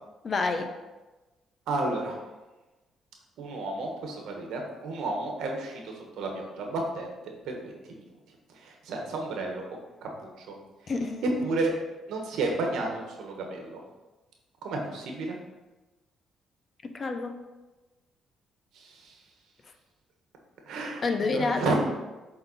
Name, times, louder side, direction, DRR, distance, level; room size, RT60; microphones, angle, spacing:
voice 1, 0.2-0.7 10.9-11.2 16.8-17.4 21.0-21.7, left 3 dB, 40° left, 6 dB, 0.8 m, -28 dB
voice 2, 1.7-2.2 3.4-8.0 8.6-9.6 10.0-10.5 11.2-11.7 12.1-13.8 14.6-15.4 18.7-19.1 20.7-21.0 21.3-21.8, right 2 dB, 85° right, 1 dB, 1.4 m, -32 dB
7.7 x 4.0 x 4.2 m, 1.1 s
cardioid pair, 90°, 0 cm